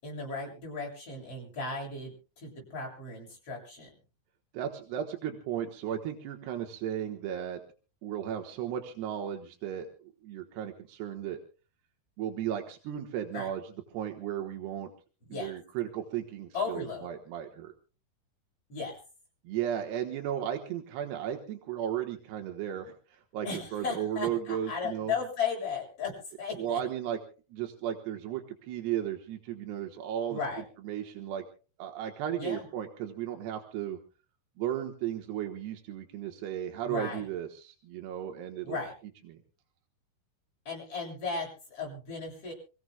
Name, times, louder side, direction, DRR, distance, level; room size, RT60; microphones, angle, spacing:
voice 1, 0.0-3.9 13.3-13.5 15.3-15.5 16.5-17.1 18.7-19.0 23.4-26.8 30.3-30.6 32.4-32.6 36.8-37.2 38.6-38.9 40.7-42.5, left 4 dB, 35° left, -2 dB, 8.2 m, -36 dB
voice 2, 4.5-7.6 8.0-11.4 12.2-14.9 15.3-17.7 19.4-23.5 23.7-25.1 26.6-27.2 27.5-30.4 30.8-31.4 31.8-34.0 34.6-38.8 39.3-39.4, right 10 dB, 90° right, 4 dB, 3.3 m, -35 dB
28.5 x 16.0 x 2.3 m, 0.36 s
omnidirectional pair, 4.7 m